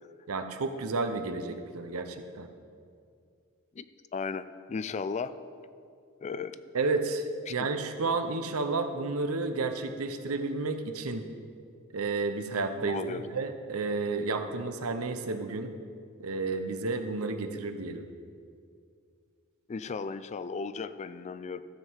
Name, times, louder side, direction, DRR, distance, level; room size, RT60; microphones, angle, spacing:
voice 1, 0.3-2.5 6.7-7.2 7.5-11.2 11.9-15.7 16.2-18.1, right 3 dB, 75° right, 8 dB, 0.8 m, -31 dB
voice 2, 4.1-5.3 6.2-6.6 7.5-7.6 8.0-8.2 12.9-13.2 19.7-21.6, left 5 dB, 30° left, 13 dB, 0.3 m, -35 dB
13.0 x 7.4 x 4.7 m, 2.3 s
head